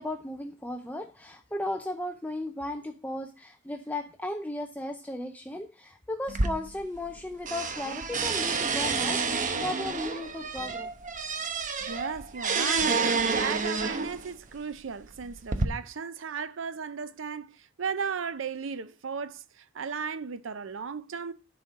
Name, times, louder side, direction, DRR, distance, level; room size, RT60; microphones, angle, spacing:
voice 1, 0.0-10.9, left 1 dB, 10° left, 0.5 m, -36 dB
sound 1, 6.3-7.2 7.5-14.3 15.0-15.6, right 4 dB, 40° right, 0.8 m, -29 dB
voice 2, 11.9-13.0 13.3-21.3, right 6 dB, 70° right, 0.6 m, -35 dB
10.5 x 4.3 x 4.9 m
head